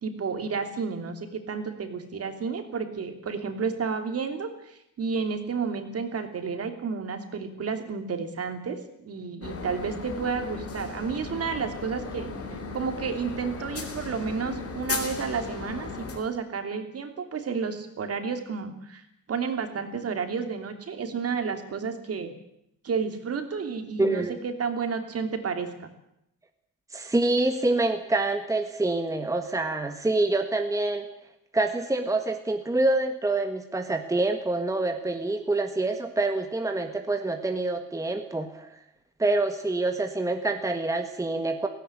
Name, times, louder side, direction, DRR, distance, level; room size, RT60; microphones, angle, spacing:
voice 1, 0.0-12.3 12.7-22.3 22.8-25.9, right 5 dB, 50° right, 7 dB, 3.0 m, -31 dB
sound 1, 9.4-16.2, left 4 dB, 45° left, 3.9 m, -36 dB
voice 2, 24.0-24.4 26.9-31.1 31.5-38.7 39.2-41.7, right 2 dB, 10° right, 5 dB, 1.5 m, -26 dB
17.0 x 17.0 x 9.8 m, 0.77 s
cardioid pair, 135°, 31 cm